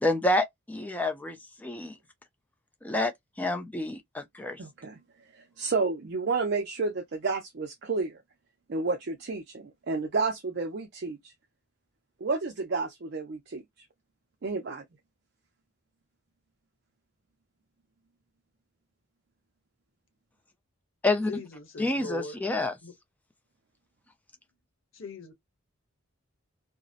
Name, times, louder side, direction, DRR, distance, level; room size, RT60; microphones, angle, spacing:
voice 1, 0.0-2.0 2.8-3.1 3.4-4.6 21.0-21.3 21.8-22.7, left 2 dB, 5° left, 0.4 m, -28 dB
voice 2, 4.6-5.0 5.6-8.2 8.7-11.3 12.2-13.6 14.4-14.8, right 4 dB, 55° right, 0.5 m, -30 dB
voice 3, 21.3-22.4 22.8-22.9 24.9-25.3, left 4 dB, 70° left, 0.9 m, -40 dB
2.6 x 2.0 x 2.3 m
head